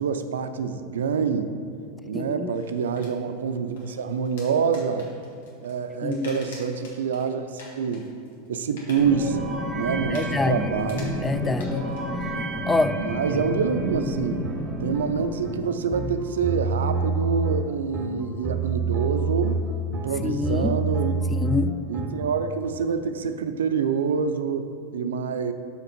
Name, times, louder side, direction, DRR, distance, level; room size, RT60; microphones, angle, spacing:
voice 1, 0.0-1.5 2.0-5.1 5.6-8.1 8.5-9.4 9.7-11.1 13.0-14.4 14.8-19.6 19.9-21.1 21.9-25.5, right 6 dB, 80° right, 9 dB, 0.4 m, -26 dB
voice 2, 2.1-2.5 6.0-6.4 10.1-10.7 11.2-11.9 12.7-13.0 20.2-20.7 21.3-21.8, left 4 dB, 15° left, 11 dB, 0.3 m, -26 dB
sound 1, 2.5-12.6, left 2 dB, 75° left, 1.8 m, -49 dB
sound 2, 9.0-16.1, equal, ahead, 1.2 m, -30 dB
sound 3, 14.4-22.3, right 3 dB, 30° right, 0.8 m, -28 dB
5.8 x 5.7 x 5.2 m, 2.3 s
hypercardioid pair, 95°, 0 cm